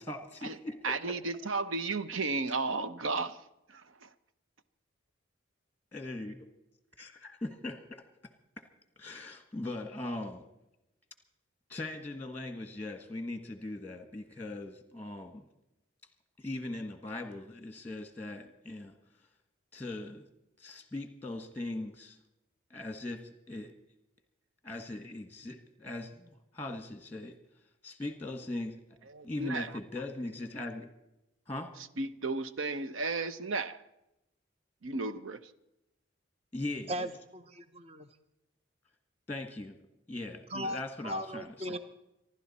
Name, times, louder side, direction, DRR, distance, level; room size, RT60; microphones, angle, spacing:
voice 1, 0.0-1.0 5.9-6.5 7.0-8.0 9.0-10.4 11.7-15.4 16.4-18.9 19.7-20.3 20.6-22.2 22.7-23.7 24.6-27.3 27.8-28.8 29.2-30.9 31.5-31.7 36.5-37.1 39.3-39.8 40.1-41.8, left 2 dB, 10° left, 7 dB, 1.4 m, -40 dB
voice 2, 0.8-4.1 29.1-29.7 32.0-33.8 34.8-35.5, right 3 dB, 80° right, 12 dB, 0.8 m, -34 dB
voice 3, 36.9-38.1 40.5-41.8, equal, 30° right, 10 dB, 0.8 m, -38 dB
26.0 x 12.0 x 4.2 m, 0.91 s
head